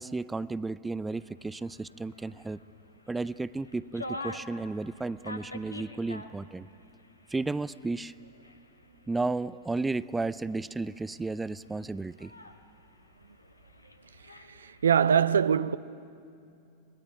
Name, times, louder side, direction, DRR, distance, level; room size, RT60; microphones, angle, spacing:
voice 1, 0.0-2.6 3.1-6.7 7.3-8.1 9.1-12.3, right 3 dB, 10° right, 0.5 m, -33 dB
sound 1, 1.1-15.0, left 2 dB, 85° left, 1.6 m, -48 dB
voice 2, 14.5-15.8, right 7 dB, 70° right, 0.6 m, -23 dB
26.0 x 20.5 x 9.9 m
figure-of-eight pair, 90°, 0 cm